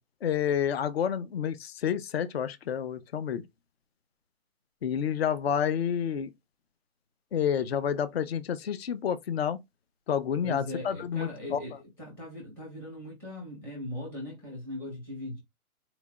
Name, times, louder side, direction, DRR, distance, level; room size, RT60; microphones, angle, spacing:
voice 1, 0.2-3.4 4.8-6.3 7.3-9.6 10.1-11.6, left 8 dB, 45° left, 0.5 m, -29 dB
voice 2, 10.4-15.4, left 1 dB, 5° left, 0.6 m, -39 dB
4.0 x 3.2 x 2.2 m
hypercardioid pair, 150°, 44 cm